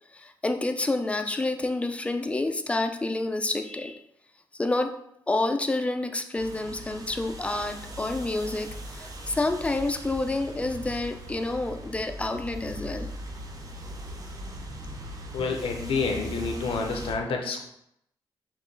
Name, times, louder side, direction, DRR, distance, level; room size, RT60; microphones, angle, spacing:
voice 1, 0.1-4.0 4.5-4.9 5.3-13.1, left 2 dB, 15° left, 6 dB, 0.4 m, -28 dB
sound 1, 6.4-17.1, right 1 dB, 40° right, 0.7 m, -40 dB
voice 2, 15.3-17.7, left 4 dB, 80° left, 3 dB, 0.5 m, -29 dB
4.2 x 3.0 x 3.2 m, 0.75 s
cardioid pair, 100°, 9 cm